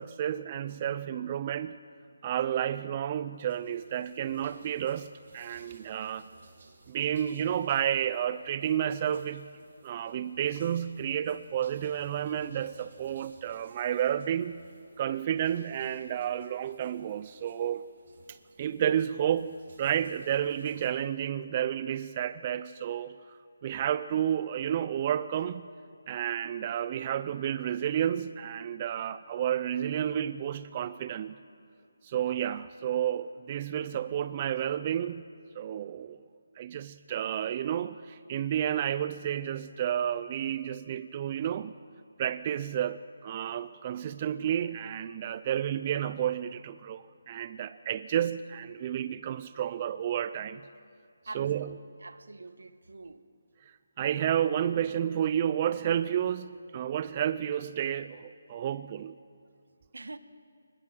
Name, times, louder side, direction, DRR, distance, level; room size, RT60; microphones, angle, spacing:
voice 1, 0.0-1.8 2.2-6.3 6.9-9.5 9.8-14.6 15.0-17.8 18.6-23.4 23.6-25.7 26.1-31.4 32.0-35.2 35.6-36.2 36.6-41.7 42.2-50.6 51.3-51.7 54.0-59.2, right 10 dB, 30° right, 0.5 m, -31 dB
sound 1, 3.4-20.9, right 3 dB, 55° right, 5.3 m, -59 dB
voice 2, 51.3-53.2 59.9-60.2, right 3 dB, 80° right, 1.2 m, -45 dB
22.5 x 20.5 x 6.2 m
figure-of-eight pair, 160°, 0 cm